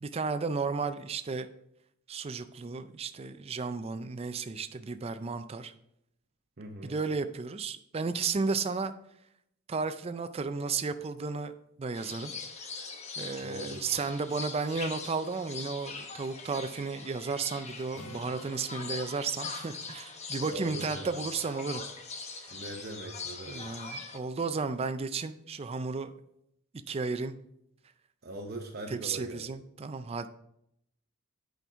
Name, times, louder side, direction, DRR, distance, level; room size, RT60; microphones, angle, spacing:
voice 1, 0.0-1.5 2.1-5.7 6.8-8.9 9.7-11.5 11.8-12.3 13.2-21.8 23.5-26.1 26.9-27.3 28.9-30.3, right 4 dB, 25° right, 10 dB, 0.4 m, -33 dB
voice 2, 6.6-7.0 13.4-13.9 20.4-21.2 22.5-23.6 28.2-29.4, right 1 dB, 45° right, 0 dB, 0.8 m, -41 dB
sound 1, 11.9-24.2, left 4 dB, 30° left, 0.8 m, -42 dB
Acoustic guitar, 17.9-21.7, left 1 dB, 70° left, 0.8 m, -52 dB
8.4 x 5.2 x 4.5 m, 0.76 s
head